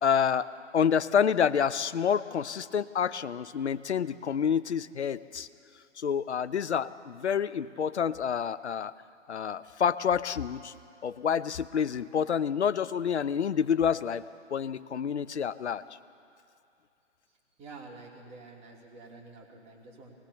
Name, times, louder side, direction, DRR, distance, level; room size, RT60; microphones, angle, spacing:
voice 1, 0.0-5.5 6.0-8.9 9.3-10.7 11.0-14.2 14.5-15.8, left 7 dB, 65° left, 15 dB, 0.9 m, -28 dB
voice 2, 17.6-20.1, right 3 dB, 20° right, -1 dB, 3.2 m, -48 dB
25.0 x 20.0 x 7.1 m, 2.5 s
figure-of-eight pair, 130°, 36 cm